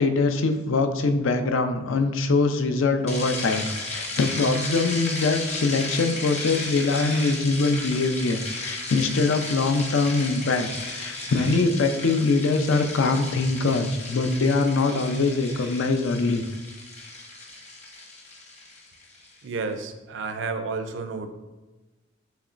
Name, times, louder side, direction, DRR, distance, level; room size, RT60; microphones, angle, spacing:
voice 1, 0.0-16.4, left 3 dB, 80° left, 7 dB, 0.5 m, -23 dB
sound 1, 3.1-19.3, left 2 dB, 35° left, 0.9 m, -35 dB
voice 2, 19.4-21.3, right 4 dB, 65° right, 7 dB, 0.4 m, -31 dB
6.6 x 3.1 x 2.5 m, 1.2 s
head